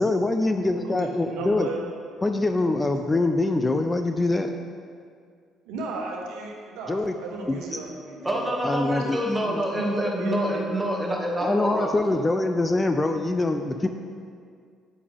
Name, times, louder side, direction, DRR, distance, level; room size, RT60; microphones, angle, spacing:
voice 1, 0.0-1.7 2.2-4.5 6.9-7.1 7.5-7.6 8.6-9.2 11.4-13.9, left 2 dB, 20° left, 6 dB, 0.5 m, -24 dB
voice 2, 0.8-1.8 5.7-8.3 9.8-10.7, right 3 dB, 75° right, -1 dB, 1.3 m, -34 dB
voice 3, 8.2-12.4, equal, 5° right, -3 dB, 2.1 m, -27 dB
8.7 x 8.5 x 3.6 m, 2.2 s
hypercardioid pair, 60°, 0 cm